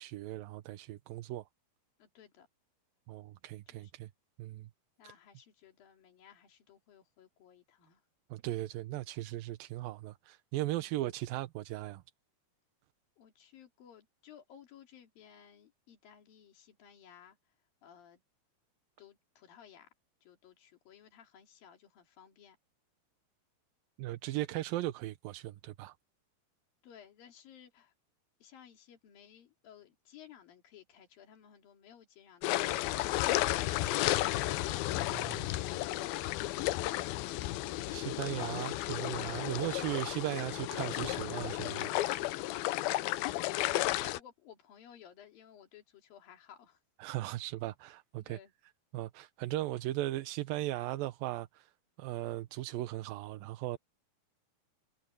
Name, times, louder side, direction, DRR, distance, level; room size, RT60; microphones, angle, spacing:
voice 1, 0.0-1.4 3.1-4.1 4.4-4.7 5.0-5.1 8.3-12.0 24.0-25.9 35.1-35.5 37.9-41.9 42.2-42.4 44.0-44.1 47.0-48.4 48.9-51.7 52.0-53.8, right 16 dB, 80° right, 2.4 m, -37 dB
voice 2, 2.0-2.5 3.7-3.9 5.0-8.0 10.7-10.9 13.2-17.5 17.8-18.2 19.0-19.9 20.2-22.6 26.8-27.9 28.4-34.1 43.1-46.8 48.2-48.5, left 9 dB, 65° left, 4.4 m, -58 dB
sound 1, 32.4-44.2, left 16 dB, 85° left, 2.5 m, -33 dB
omnidirectional pair, 4.4 m